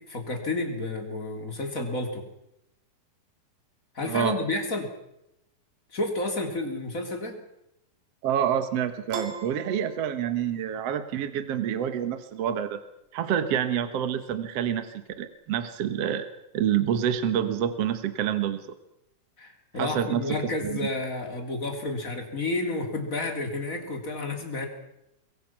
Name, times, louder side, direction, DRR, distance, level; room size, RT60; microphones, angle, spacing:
voice 1, 0.0-2.3 3.9-4.9 5.9-7.4 19.4-24.7, left 2 dB, 25° left, 3 dB, 3.2 m, -31 dB
voice 2, 4.0-4.4 8.2-12.8 13.1-16.3 16.5-18.7 19.8-20.8, right 9 dB, 55° right, 10 dB, 2.1 m, -27 dB
Piano, 9.1-10.7, right 6 dB, 90° right, 4.2 m, -38 dB
25.0 x 22.0 x 6.0 m, 0.84 s
omnidirectional pair, 3.9 m